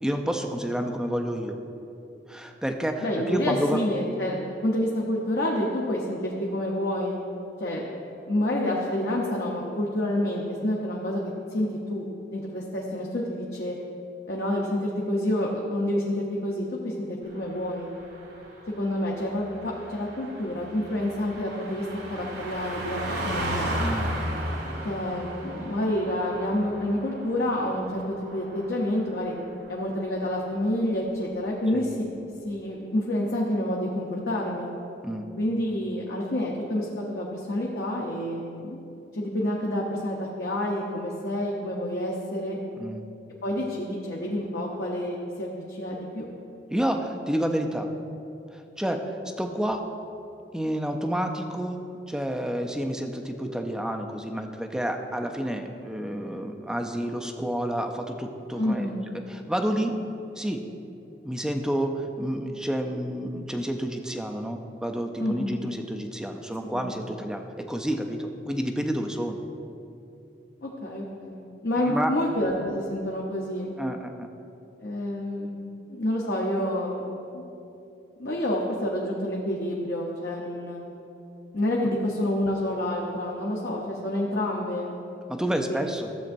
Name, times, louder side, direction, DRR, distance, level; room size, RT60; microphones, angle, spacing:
voice 1, 0.0-1.6 2.3-3.8 23.8-24.1 31.7-31.9 35.0-35.3 42.8-43.0 46.7-47.9 48.5-49.8 50.5-51.8 52.1-58.9 59.3-60.0 60.4-60.6 61.2-69.4 71.8-72.2 73.8-74.3 85.3-86.1, equal, 5° right, 3 dB, 0.4 m, -29 dB
voice 2, 3.0-7.2 7.6-7.8 8.3-12.0 12.3-13.8 14.3-17.9 18.8-21.8 22.1-23.7 24.8-29.3 29.7-32.1 32.4-34.7 35.4-38.8 39.1-42.6 43.4-46.3 58.6-59.0 65.2-65.6 66.6-66.8 70.6-73.7 74.8-75.5 75.9-77.5 78.2-80.8 81.5-85.0 85.7-85.9, left 1 dB, 65° left, -3 dB, 0.8 m, -28 dB
Car passing by, 17.3-29.3 29.6-29.8, right 1 dB, 75° right, 2.0 m, -35 dB
13.5 x 7.6 x 2.6 m, 2.8 s
head